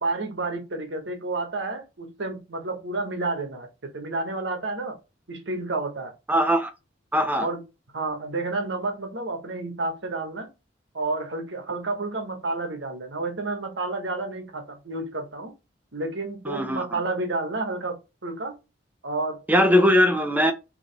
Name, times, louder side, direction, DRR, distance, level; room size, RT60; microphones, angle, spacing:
voice 1, 0.0-3.7 3.9-5.0 5.3-6.1 7.4-7.6 7.9-10.5 10.9-15.5 15.9-18.6 19.0-19.4, right 3 dB, 75° right, 1.4 m, -30 dB
voice 2, 6.3-6.7 7.1-7.5 16.5-17.0 19.5-20.5, equal, 10° right, 0.8 m, -20 dB
4.8 x 3.2 x 3.4 m
head